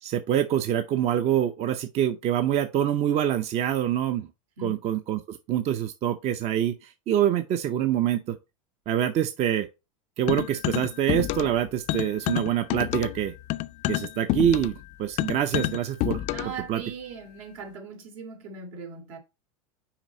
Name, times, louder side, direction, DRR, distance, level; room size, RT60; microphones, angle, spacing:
voice 1, 0.0-4.3 4.6-8.4 8.9-9.7 10.2-13.3 13.9-14.7 15.0-16.2 16.7-16.8, right 10 dB, 40° right, 0.6 m, -25 dB
sound 1, 10.3-11.6 11.9-16.6, left 16 dB, 45° left, 0.4 m, -29 dB
voice 2, 16.3-19.2, right 5 dB, 75° right, 2.6 m, -39 dB
5.9 x 4.8 x 4.2 m
supercardioid pair, 115°, 18 cm